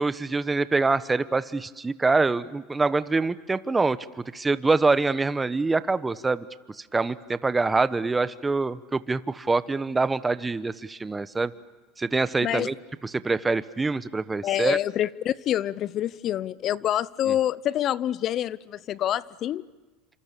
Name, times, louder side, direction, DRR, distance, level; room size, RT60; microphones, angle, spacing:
voice 1, 0.0-4.0 4.3-6.4 6.9-11.5 12.0-12.7 13.0-14.8 17.3-17.4, right 3 dB, 15° right, 1.1 m, -25 dB
voice 2, 12.4-12.7 14.4-19.7, left 11 dB, 45° left, 0.8 m, -27 dB
29.5 x 27.0 x 6.9 m
supercardioid pair, 105°, 0 cm